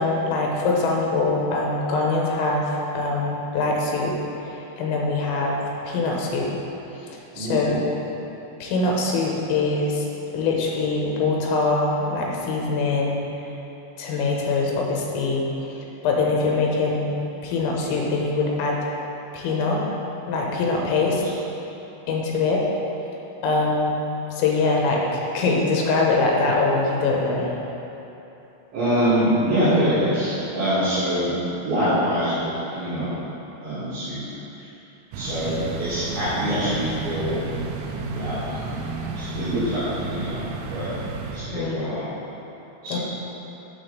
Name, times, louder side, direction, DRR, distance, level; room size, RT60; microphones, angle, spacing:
voice 1, 0.0-2.7 2.9-4.2 4.8-6.5 7.0-7.9 8.6-10.1 10.3-13.2 14.0-15.5 16.0-17.1 17.4-18.8 19.3-19.8 20.3-21.2 22.1-22.7 23.4-24.0 24.4-27.5 41.5-41.9 42.9-43.0, left 3 dB, 85° left, -2 dB, 3.7 m, -23 dB
voice 2, 7.4-7.8 16.3-16.4 21.1-21.2 28.7-31.3 31.6-33.1 33.6-34.2 35.1-35.5 35.8-37.4 38.1-38.7 39.1-40.4 40.7-40.9 41.3-42.1 42.8-43.0, equal, 65° right, -14 dB, 4.1 m, -24 dB
sound 1, 35.1-41.4, right 3 dB, 85° right, 3.2 m, -32 dB
8.8 x 7.1 x 3.9 m, 3.0 s
omnidirectional pair, 5.9 m